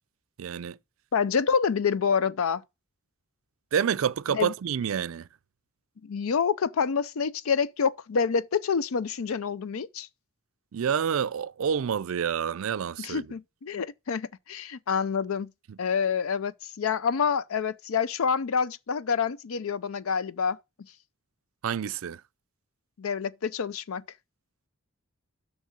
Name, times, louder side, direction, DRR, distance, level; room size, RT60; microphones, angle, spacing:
voice 1, 0.4-0.8 3.7-5.3 10.7-13.3 15.7-15.8 21.6-22.2, right 7 dB, 70° right, 0.4 m, -28 dB
voice 2, 1.1-2.6 4.3-4.5 6.0-10.1 13.0-15.5 15.8-20.6 23.0-24.0, left 6 dB, 75° left, 0.5 m, -27 dB
6.5 x 6.0 x 6.2 m
head